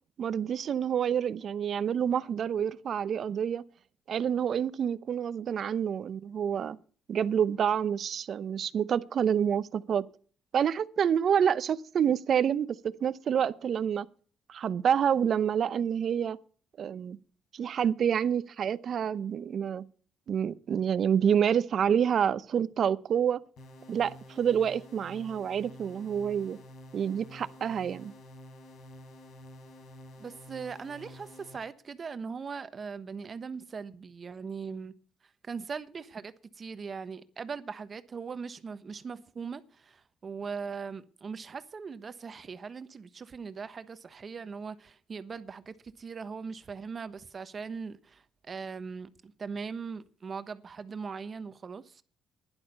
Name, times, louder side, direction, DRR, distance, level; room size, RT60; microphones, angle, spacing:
voice 1, 0.2-3.6 4.1-6.8 7.1-10.0 10.5-14.1 14.5-16.4 16.8-17.2 17.5-19.8 20.3-23.4 23.9-26.6 26.9-28.1, right 8 dB, 60° right, 0.7 m, -28 dB
sound 1, 23.6-31.6, left 1 dB, 70° left, 3.7 m, -50 dB
voice 2, 30.2-34.9 35.5-52.0, right 5 dB, 45° right, 1.1 m, -40 dB
11.5 x 11.0 x 5.4 m
supercardioid pair, 65°, 0 cm